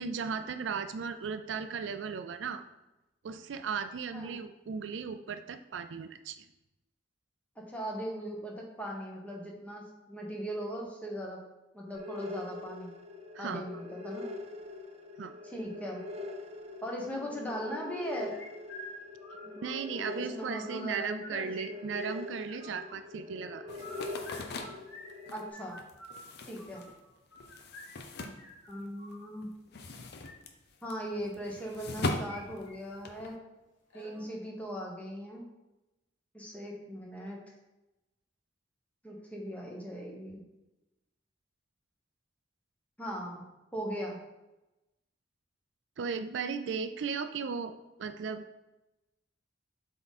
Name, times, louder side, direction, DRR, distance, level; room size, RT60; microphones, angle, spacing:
voice 1, 0.0-2.6 3.2-6.5 13.3-13.6 15.2-15.3 19.6-23.9 46.0-47.7 48.0-48.6, right 5 dB, 75° right, 10 dB, 0.4 m, -36 dB
voice 2, 7.5-11.4 11.7-12.9 13.4-14.2 15.4-16.0 16.8-18.4 19.4-19.5 20.1-21.5 25.3-25.8 26.5-26.8 28.7-29.5 30.8-33.4 33.9-35.4 36.3-37.4 39.0-40.4 43.0-43.5 43.7-44.2, equal, 10° left, -1 dB, 1.3 m, -39 dB
sound 1, 11.9-25.5, left 2 dB, 35° right, 0.7 m, -43 dB
sound 2, 18.1-20.0 20.3-21.7 21.9-22.9 23.6-29.3 30.0-30.3 31.6-32.4 32.7-32.8 33.2-33.3 33.9-34.3, left 1 dB, 85° left, 2.1 m, -48 dB
sound 3, 23.7-29.1 29.4-33.3, left 2 dB, 60° left, 0.7 m, -40 dB
7.9 x 3.7 x 4.2 m, 1.0 s
head